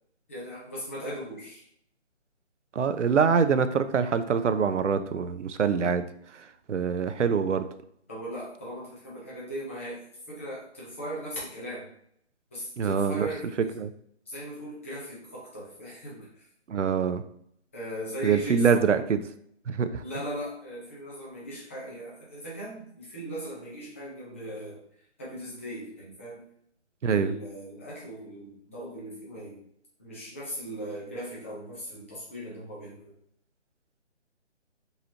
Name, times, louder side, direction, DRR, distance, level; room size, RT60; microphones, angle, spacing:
voice 1, 0.3-1.6 8.1-10.0 10.3-11.9 12.5-13.7 14.3-16.4 17.7-18.9 20.0-24.8 25.2-26.4 27.1-29.6 30.0-33.1, equal, 10° left, -7 dB, 0.6 m, -38 dB
voice 2, 2.7-6.1 6.3-7.7 12.8-13.3 13.6-13.9 16.7-17.2 18.2-19.2 19.7-20.0 27.0-27.3, right 6 dB, 85° right, 11 dB, 0.6 m, -25 dB
5.4 x 3.0 x 2.8 m, 0.70 s
figure-of-eight pair, 155°, 35 cm